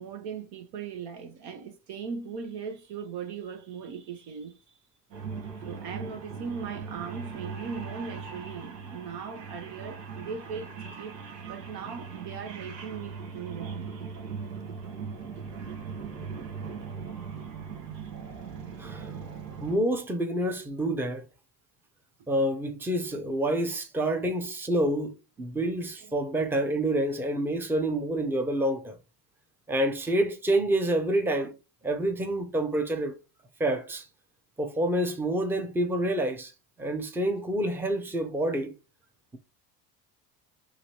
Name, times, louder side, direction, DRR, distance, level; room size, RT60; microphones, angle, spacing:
voice 1, 0.0-4.6 5.6-11.2 11.5-13.9, right 6 dB, 55° right, 0.7 m, -39 dB
sound 1, 5.1-19.8, right 6 dB, 75° right, 1.1 m, -39 dB
voice 2, 18.8-19.1 19.6-21.2 22.3-29.0 29.7-31.5 31.8-33.2 33.6-34.1 34.6-36.5 36.8-38.7, right 1 dB, 5° right, 0.6 m, -28 dB
2.9 x 2.8 x 2.9 m
hypercardioid pair, 70°, 50 cm